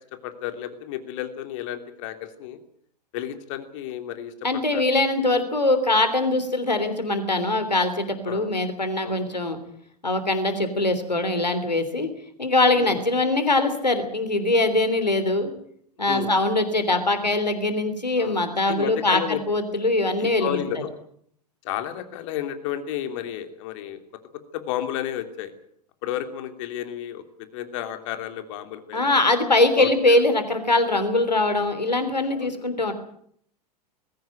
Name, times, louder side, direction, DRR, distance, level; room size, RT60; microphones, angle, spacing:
voice 1, 0.1-2.6 3.1-4.8 8.3-8.5 9.0-9.3 12.7-13.0 16.1-16.3 18.2-18.4 18.7-19.4 20.2-20.9 21.6-24.0 24.5-25.5 26.0-27.2 27.5-29.1 29.8-29.9 32.2-32.7, left 11 dB, 50° left, 8 dB, 2.9 m, -32 dB
voice 2, 4.4-9.6 10.0-12.1 12.4-15.5 16.0-20.6 28.9-32.9, left 2 dB, 85° left, 9 dB, 3.4 m, -22 dB
20.5 x 17.0 x 9.1 m, 0.66 s
figure-of-eight pair, 95°, 21 cm